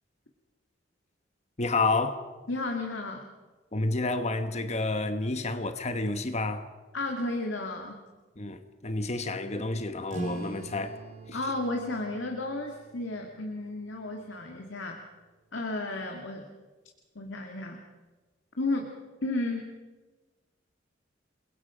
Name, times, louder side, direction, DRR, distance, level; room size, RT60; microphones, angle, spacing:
voice 1, 1.6-2.2 3.7-6.7 8.4-11.0, left 3 dB, 35° left, 1.2 m, -30 dB
voice 2, 2.5-3.3 6.9-8.0 11.3-15.1 15.5-16.5 17.2-17.8 18.6-18.9 19.2-19.8, left 2 dB, 85° left, 2.2 m, -33 dB
sound 1, 10.1-15.2, right 2 dB, 40° right, 3.0 m, -43 dB
29.0 x 22.0 x 5.1 m
head